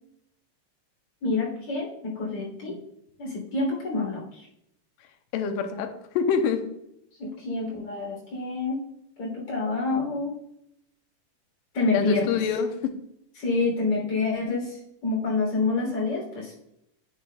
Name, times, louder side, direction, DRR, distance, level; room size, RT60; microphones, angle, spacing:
voice 1, 1.2-2.8 3.2-4.5 7.2-8.8 9.2-10.3 11.7-12.4 13.4-16.5, left 3 dB, 45° left, -3 dB, 4.0 m, -27 dB
voice 2, 5.3-6.7 11.9-12.8, left 6 dB, 85° left, 6 dB, 2.4 m, -26 dB
9.6 x 7.9 x 2.3 m, 0.79 s
omnidirectional pair, 3.8 m